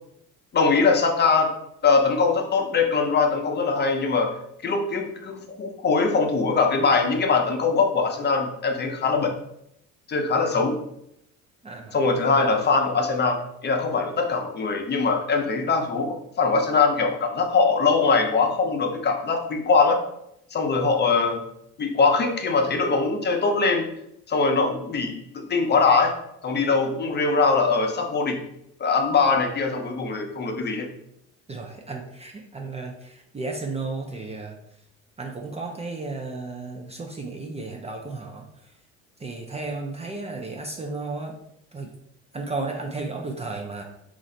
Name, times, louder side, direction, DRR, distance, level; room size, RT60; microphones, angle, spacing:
voice 1, 0.5-1.5 1.8-4.3 4.6-9.3 10.1-10.8 11.9-20.0 20.5-21.4 21.8-23.9 24.3-26.1 26.4-28.4 28.8-30.9, left 4 dB, 30° left, 3 dB, 0.7 m, -22 dB
voice 2, 11.6-12.0 31.5-34.6 35.2-38.5 39.2-41.3 41.7-41.9 42.3-43.8, right 3 dB, 20° right, 1 dB, 0.4 m, -33 dB
3.1 x 2.5 x 4.0 m, 0.77 s
supercardioid pair, 95°, 33 cm